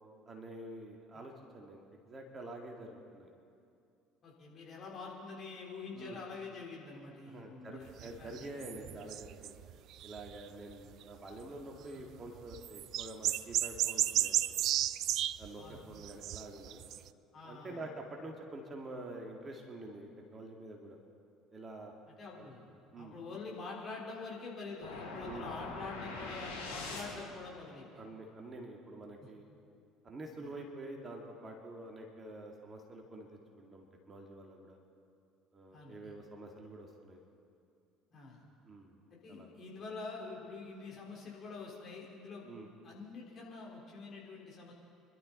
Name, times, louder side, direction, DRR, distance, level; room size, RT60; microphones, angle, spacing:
voice 1, 0.3-1.8 2.1-3.3 5.9-6.2 7.3-9.5 10.0-14.6 15.4-16.8 17.4-21.0 21.5-21.9 22.3-22.5 22.9-23.2 25.2-25.5 28.0-29.4 30.0-34.8 35.5-37.2 38.7-39.0 39.3-39.5 42.4-42.7, right 2 dB, 30° right, 1 dB, 2.4 m, -47 dB
voice 2, 4.2-7.9 8.2-8.5 11.9-12.0 15.6-15.8 17.3-17.8 22.2-22.7 23.0-28.0 30.3-30.5 35.7-36.0 38.1-38.4 39.1-42.4 42.8-44.7, left 4 dB, 40° left, -3 dB, 4.4 m, -46 dB
sound 1, 7.9-10.4 10.7-10.8 11.0-11.1 11.3-11.4 12.5-17.1, right 12 dB, 50° right, 0.4 m, -33 dB
sound 2, 24.8-27.5, left 3 dB, 80° left, 3.0 m, -43 dB
26.5 x 12.0 x 4.2 m, 2.4 s
figure-of-eight pair, 60°, 0 cm